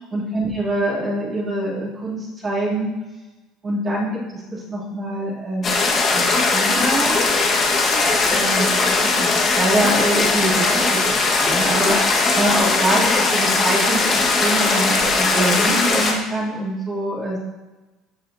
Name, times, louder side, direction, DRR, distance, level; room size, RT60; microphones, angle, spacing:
voice 1, 0.1-2.9 3.6-5.7 6.1-6.2 6.5-7.2 8.3-8.9 9.2-10.5 10.8-17.4, right 1 dB, 30° right, -7 dB, 2.8 m, -24 dB
sound 1, 5.6-16.1, left 3 dB, 40° left, 1.5 m, -19 dB
13.5 x 5.6 x 2.7 m, 1.1 s
cardioid pair, 115°, 0 cm